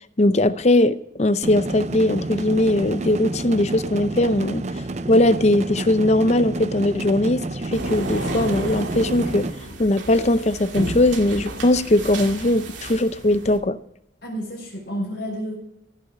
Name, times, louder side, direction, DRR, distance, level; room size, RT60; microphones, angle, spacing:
voice 1, 0.2-4.6 5.1-9.4 9.8-13.8, left 1 dB, 35° left, 13 dB, 0.6 m, -20 dB
sound 1, 1.4-9.5, right 2 dB, 35° right, 0.6 m, -30 dB
sound 2, 7.7-13.6, right 1 dB, 90° right, 2.2 m, -32 dB
voice 2, 14.2-15.6, equal, 60° left, -5 dB, 4.6 m, -30 dB
16.0 x 7.2 x 6.4 m, 0.81 s
head